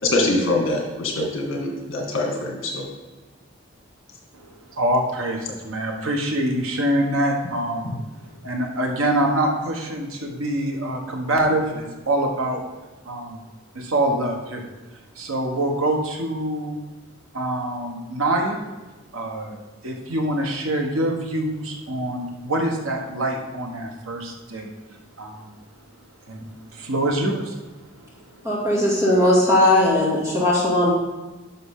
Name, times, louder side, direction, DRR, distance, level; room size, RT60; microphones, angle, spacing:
voice 1, 0.0-2.9 7.8-7.9, left 2 dB, 70° left, 0 dB, 2.0 m, -24 dB
voice 2, 4.3-8.0 8.4-12.6 13.0-13.4 13.7-14.6 15.1-16.8 17.3-18.6 19.1-24.7 25.2-25.6 26.3-27.6 28.0-28.1 28.3-28.4, right 1 dB, 90° right, 1 dB, 1.3 m, -25 dB
voice 3, 28.4-30.9, left 1 dB, 15° right, -6 dB, 2.4 m, -18 dB
11.0 x 5.9 x 3.7 m, 1.2 s
head